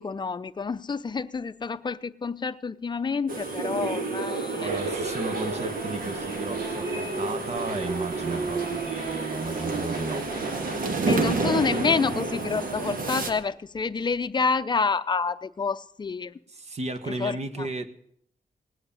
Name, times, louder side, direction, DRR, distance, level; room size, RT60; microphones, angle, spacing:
voice 1, 0.0-4.9 11.1-16.4 17.1-17.7, left 5 dB, 30° left, 0.5 m, -28 dB
sound 1, 3.3-13.3, right 3 dB, 70° right, 1.7 m, -31 dB
voice 2, 4.6-10.2 11.1-11.6 16.5-17.9, right 3 dB, 45° right, 1.3 m, -34 dB
sound 2, 4.6-13.4, right 3 dB, 85° right, 2.5 m, -34 dB
18.5 x 8.2 x 7.0 m
wide cardioid pair, 115°, 15 cm